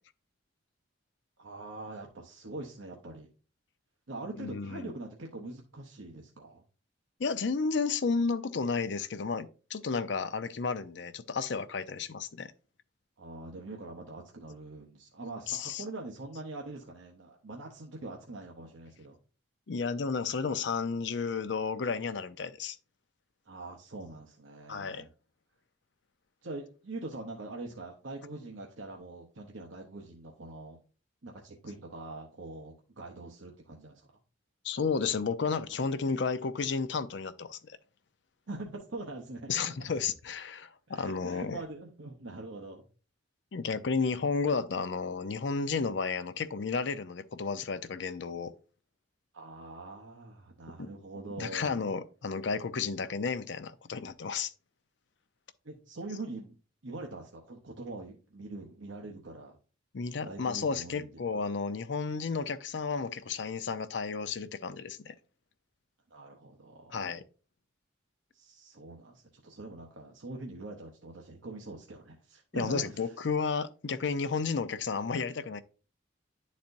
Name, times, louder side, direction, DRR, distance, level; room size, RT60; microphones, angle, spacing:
voice 1, 1.4-3.3 4.1-6.6 13.2-19.2 23.5-25.1 26.4-30.8 31.2-34.0 38.5-39.5 40.9-42.8 49.3-51.8 55.6-56.6 56.8-59.6 60.2-61.1 66.1-67.1 68.3-73.1, right 2 dB, 75° right, 0.9 m, -43 dB
voice 2, 4.4-4.9 7.2-12.5 15.5-15.8 19.7-22.8 24.7-25.1 34.6-37.8 39.5-41.6 43.5-48.5 50.8-50.9 51.4-54.5 59.9-65.1 66.9-67.2 72.5-75.6, left 5 dB, 65° left, 0.5 m, -32 dB
10.5 x 4.2 x 2.6 m
head